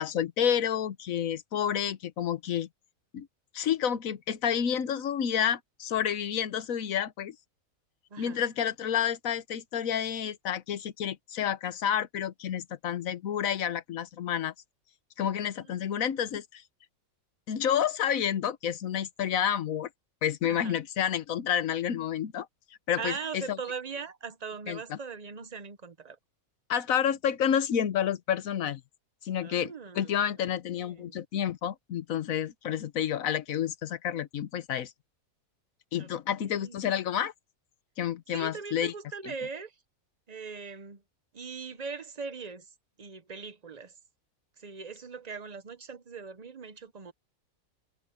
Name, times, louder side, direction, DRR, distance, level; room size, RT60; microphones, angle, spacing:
voice 1, 0.0-2.7 3.1-3.3 3.5-7.3 8.2-14.5 15.2-16.6 17.5-19.9 20.2-22.5 22.9-23.6 24.7-25.0 26.7-28.8 29.2-34.9 35.9-37.3 38.0-38.9, left 9 dB, 70° left, 1.3 m, -29 dB
voice 2, 8.1-8.4 15.6-15.7 20.5-20.8 23.0-26.2 29.4-30.2 30.7-31.2 36.0-36.1 36.4-36.9 38.3-39.7 40.3-41.0 41.3-42.7 43.0-43.9 44.6-47.1, right 5 dB, 35° right, 0.7 m, -40 dB
omnidirectional pair, 1.5 m